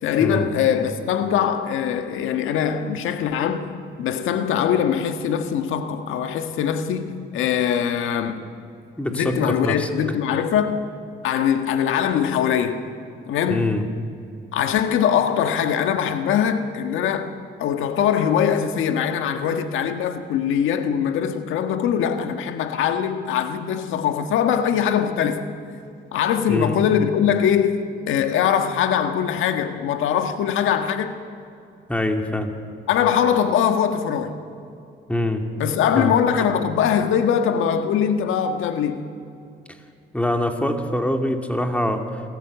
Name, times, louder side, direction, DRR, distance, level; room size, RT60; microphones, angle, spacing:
voice 1, 0.0-3.7 4.0-8.4 9.1-10.9 11.2-12.8 13.3-13.7 14.5-17.3 17.6-25.5 26.1-31.1 32.9-34.4 35.6-39.1, left 8 dB, 90° left, 1.5 m, -22 dB
voice 2, 9.0-9.9 13.5-13.8 26.5-26.8 31.9-32.5 35.1-35.4 36.0-36.1 40.1-42.2, left 1 dB, 5° left, 2.4 m, -24 dB
27.5 x 14.0 x 8.1 m
cardioid pair, 90°, 20 cm